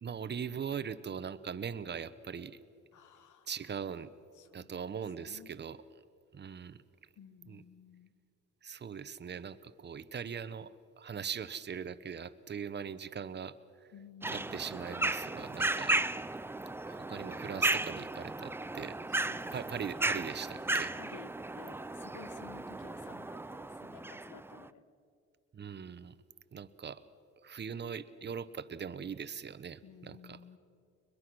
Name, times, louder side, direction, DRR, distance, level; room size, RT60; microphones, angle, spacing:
voice 1, 0.0-2.6 3.5-4.1 4.5-5.8 6.3-6.8 7.5-7.6 8.6-13.6 14.3-16.0 16.9-19.0 19.5-20.9 25.5-26.2 26.5-27.0 27.4-30.4, right 7 dB, 35° right, 14 dB, 0.9 m, -41 dB
voice 2, 2.9-3.5 4.3-4.8 5.2-5.5 7.2-8.1 13.9-14.8 19.1-20.3 21.0-24.8 29.8-30.6, left 7 dB, 80° left, 10 dB, 1.6 m, -54 dB
sound 1, 14.2-24.6, right 2 dB, 10° right, 0.4 m, -35 dB
22.0 x 21.5 x 6.1 m, 2.4 s
cardioid pair, 90°, 30 cm